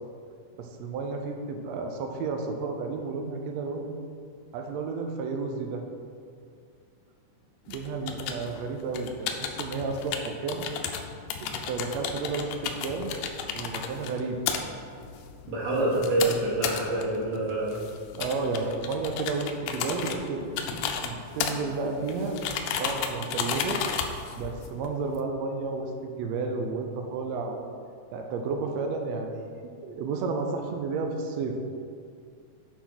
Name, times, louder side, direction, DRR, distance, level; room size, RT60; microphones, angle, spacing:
voice 1, 0.6-3.9 4.5-5.8 7.7-10.7 11.4-13.2 13.5-14.4 15.7-16.0 18.1-22.4 22.8-23.8 24.4-27.6 28.1-29.5 29.8-31.5, right 4 dB, 85° right, 3 dB, 1.5 m, -32 dB
sound 1, 7.7-25.2, left 7 dB, 80° left, 2.0 m, -34 dB
voice 2, 15.5-17.7, right 2 dB, 60° right, -6 dB, 3.0 m, -26 dB
8.0 x 4.1 x 6.0 m, 2.3 s
omnidirectional pair, 3.8 m